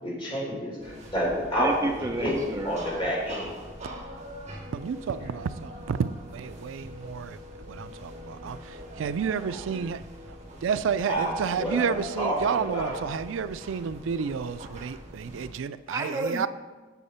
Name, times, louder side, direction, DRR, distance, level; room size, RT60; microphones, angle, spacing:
voice 1, 0.0-1.7 2.2-2.3 2.6-3.5 11.1-11.9 12.2-13.0, equal, 25° left, 3.3 m, -29 dB
sound 1, 0.8-15.5, equal, 35° right, 1.7 m, -43 dB
voice 2, 1.6-2.8 15.9-16.5, right 2 dB, 15° right, 0.4 m, -31 dB
voice 3, 4.7-16.5, right 6 dB, 80° right, 0.4 m, -31 dB
8.2 x 6.6 x 5.6 m
head